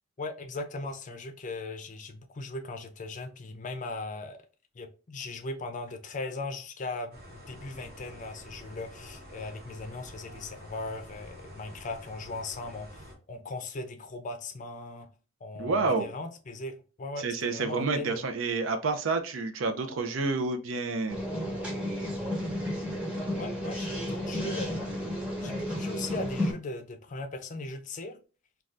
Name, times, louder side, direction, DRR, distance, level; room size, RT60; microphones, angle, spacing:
voice 1, 0.2-4.4 4.7-15.1 15.4-18.2 23.4-28.2, left 2 dB, 40° left, 0.5 m, -38 dB
sound 1, 7.1-13.1, equal, 50° right, 0.9 m, -48 dB
voice 2, 15.6-16.1 17.2-21.2, right 3 dB, 75° right, 0.5 m, -29 dB
sound 2, 21.1-26.5, left 1 dB, 5° right, 0.8 m, -32 dB
2.5 x 2.3 x 3.2 m
head